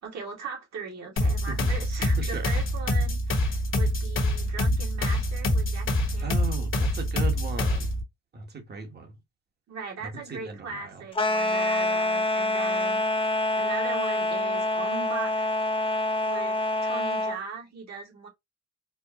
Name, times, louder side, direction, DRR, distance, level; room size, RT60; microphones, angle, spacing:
voice 1, 0.0-6.4 9.7-13.1 13.6-15.5 16.2-18.3, right 5 dB, 60° right, 1.9 m, -39 dB
sound 1, 1.2-8.0, left 1 dB, 45° left, 1.2 m, -25 dB
voice 2, 2.2-2.5 6.2-7.9 8.3-9.2 10.0-11.0, right 4 dB, 35° right, 1.1 m, -37 dB
sound 2, 11.1-17.4, left 1 dB, 20° left, 0.7 m, -26 dB
4.4 x 2.1 x 2.8 m
cardioid pair, 90°, 30 cm